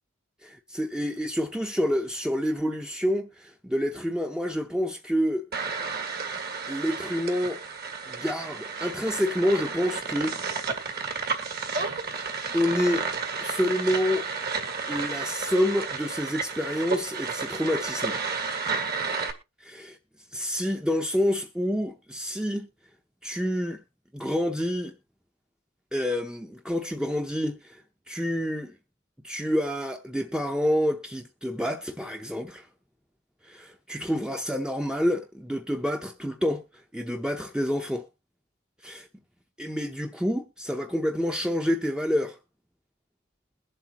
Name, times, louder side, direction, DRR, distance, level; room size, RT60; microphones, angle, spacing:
voice 1, 0.4-5.4 6.7-7.6 8.1-10.7 12.5-13.1 13.4-14.3 14.9-18.2 19.6-20.0 20.3-22.7 23.2-23.8 24.1-24.9 25.9-28.8 29.2-32.7 33.4-36.6 36.9-38.1 38.8-39.1 39.6-42.4, equal, 5° right, 0.7 m, -28 dB
sound 1, 5.5-19.3, right 4 dB, 50° right, 1.9 m, -32 dB
21.5 x 7.7 x 2.9 m
head